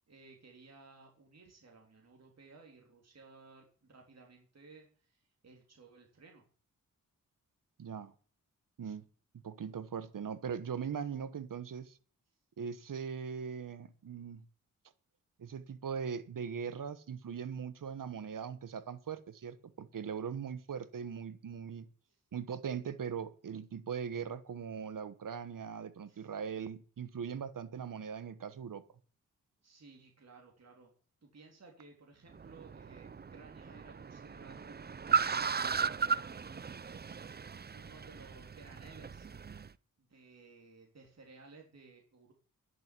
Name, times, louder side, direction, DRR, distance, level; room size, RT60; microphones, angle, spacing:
voice 1, 0.1-6.4 22.1-22.2 26.1-26.3 29.6-30.9 31.2-35.1 35.4-36.1 37.7-39.3 40.0-42.3, right 3 dB, 50° right, 3.4 m, -57 dB
voice 2, 7.8-8.1 8.8-9.0 9.3-12.0 12.6-14.4 15.4-21.9 22.3-28.8, right 7 dB, 70° right, 1.3 m, -40 dB
Car, 32.3-39.7, right 6 dB, 30° right, 0.5 m, -36 dB
11.0 x 7.7 x 9.8 m
cardioid pair, 70°, 34 cm